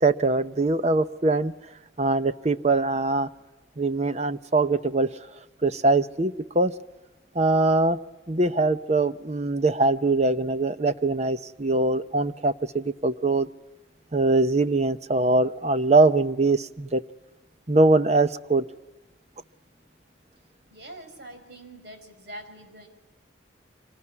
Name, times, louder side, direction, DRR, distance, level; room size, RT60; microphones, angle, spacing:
voice 1, 0.0-1.5 2.0-3.3 3.8-5.1 5.6-6.7 7.3-8.0 8.3-13.5 14.1-17.0 17.7-18.6, right 2 dB, 35° right, 12 dB, 0.8 m, -22 dB
voice 2, 20.7-22.9, right 1 dB, 55° right, 5 dB, 5.3 m, -44 dB
25.5 x 19.5 x 9.8 m, 1.1 s
head